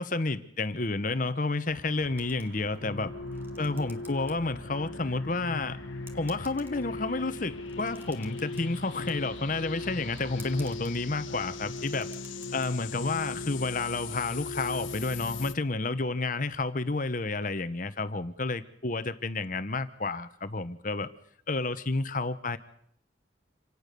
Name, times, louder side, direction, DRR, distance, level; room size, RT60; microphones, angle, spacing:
voice 1, 0.0-3.1 3.6-5.8 6.1-12.1 12.5-21.1 21.5-22.6, left 3 dB, 45° left, 11 dB, 1.0 m, -30 dB
sound 1, 1.7-10.7, right 1 dB, 80° right, 2.3 m, -51 dB
sound 2, 2.2-2.9 3.2-4.3 4.7-4.8 5.6-5.7 6.1-7.0 7.6-9.2 10.2-11.0 11.5-12.7, right 1 dB, 10° right, 2.0 m, -53 dB
sound 3, 2.8-15.5, left 3 dB, 90° left, 1.0 m, -38 dB
27.0 x 18.0 x 6.8 m, 0.68 s
head